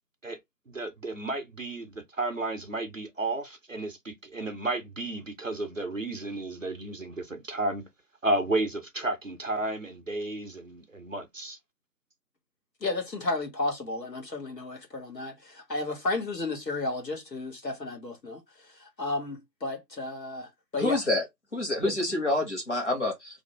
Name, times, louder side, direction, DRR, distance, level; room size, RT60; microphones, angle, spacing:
voice 1, 0.7-7.9 8.2-11.6, right 2 dB, 55° right, 0.5 m, -32 dB
voice 2, 12.8-21.0 21.8-21.9, left 2 dB, 80° left, 1.3 m, -33 dB
voice 3, 20.7-21.3 21.5-23.4, left 2 dB, 45° left, 1.1 m, -27 dB
2.5 x 2.0 x 2.9 m
figure-of-eight pair, 165°, 50 cm